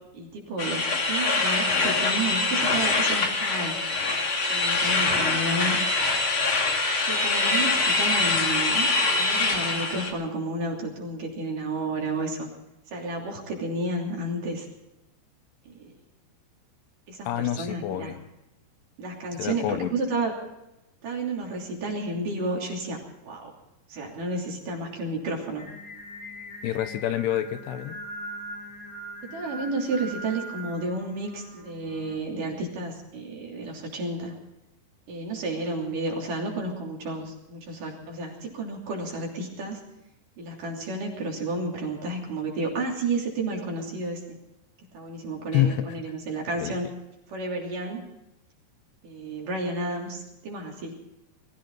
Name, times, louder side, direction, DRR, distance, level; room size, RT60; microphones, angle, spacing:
voice 1, 0.1-3.8 4.5-5.8 7.0-12.5 12.9-14.7 15.7-15.9 17.1-17.3 17.6-18.2 19.0-20.3 21.0-23.0 23.2-23.5 23.9-25.7 29.3-34.3 35.1-39.8 40.4-44.4 44.9-46.9 47.3-48.0 49.0-50.9, right 2 dB, 50° right, -1 dB, 4.4 m, -31 dB
sound 1, 0.6-10.1, left 3 dB, 40° left, 2.3 m, -24 dB
voice 2, 17.3-18.2 19.4-19.9 26.6-28.0 45.5-46.0 46.6-46.8, left 12 dB, 75° left, 10 dB, 3.0 m, -27 dB
Singing, 25.6-32.2, right 1 dB, 20° left, 4.6 m, -41 dB
22.0 x 15.0 x 4.0 m, 0.94 s
omnidirectional pair, 5.0 m